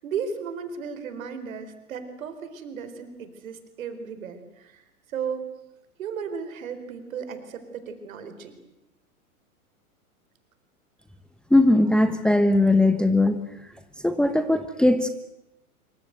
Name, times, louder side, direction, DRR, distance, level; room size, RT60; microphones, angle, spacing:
voice 1, 0.0-4.8 5.1-5.5 6.0-8.6, right 6 dB, 65° right, 9 dB, 4.5 m, -35 dB
voice 2, 11.5-13.4 14.0-15.1, left 2 dB, ahead, 9 dB, 1.2 m, -19 dB
26.0 x 24.0 x 8.1 m, 0.92 s
figure-of-eight pair, 105°, 44 cm